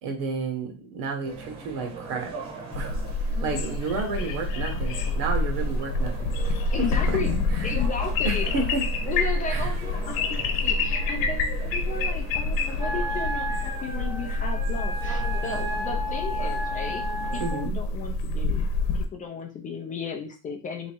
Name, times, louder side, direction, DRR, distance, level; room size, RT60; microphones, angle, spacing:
voice 1, 0.0-2.3 2.7-3.0 3.4-7.2 7.5-7.7 8.2-8.8 9.5-9.7 17.4-17.8, right 4 dB, 70° right, 4 dB, 1.3 m, -31 dB
sound 1, 1.2-17.4, right 4 dB, 50° right, 1.1 m, -41 dB
sound 2, 2.7-19.0, left 2 dB, 75° left, 0.9 m, -27 dB
voice 2, 6.7-7.3 7.6-8.5 9.1-17.1 17.3-18.6 18.9-20.9, left 5 dB, 25° left, 3 dB, 0.4 m, -34 dB
Wind instrument woodwind instrument, 12.8-17.7, left 1 dB, 10° right, 0.9 m, -33 dB
3.4 x 3.0 x 4.4 m, 0.33 s
cardioid pair, 175°, 34 cm